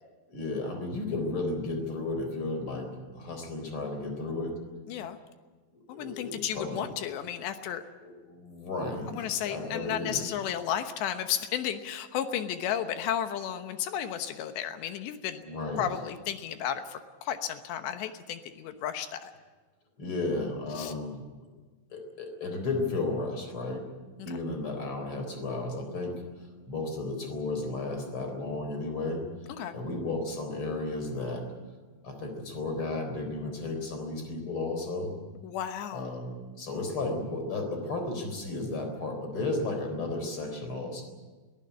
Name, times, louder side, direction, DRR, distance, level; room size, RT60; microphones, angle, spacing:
voice 1, 0.3-4.6 5.9-6.9 8.0-10.3 15.4-15.9 20.0-21.3 21.9-23.8 24.2-29.3 29.7-31.5 32.0-35.1 35.9-41.0, left 2 dB, 30° left, 5 dB, 4.2 m, -34 dB
voice 2, 5.9-7.8 9.1-15.4 15.8-19.3 20.8-20.9 24.2-24.3 29.5-29.7 35.4-36.0, left 9 dB, 75° left, 9 dB, 3.1 m, -33 dB
22.5 x 15.5 x 9.7 m, 1.4 s
omnidirectional pair, 5.6 m